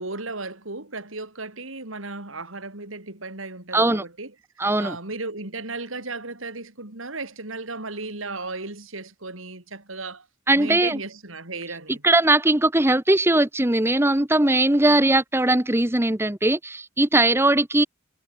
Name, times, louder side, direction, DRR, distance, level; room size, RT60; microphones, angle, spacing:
voice 1, 0.0-4.3 4.8-10.3 10.6-12.0, right 3 dB, 90° right, 4.6 m, -35 dB
voice 2, 3.7-4.0 4.6-5.0 10.5-11.0 11.9-17.8, right 1 dB, 10° right, 1.0 m, -20 dB
head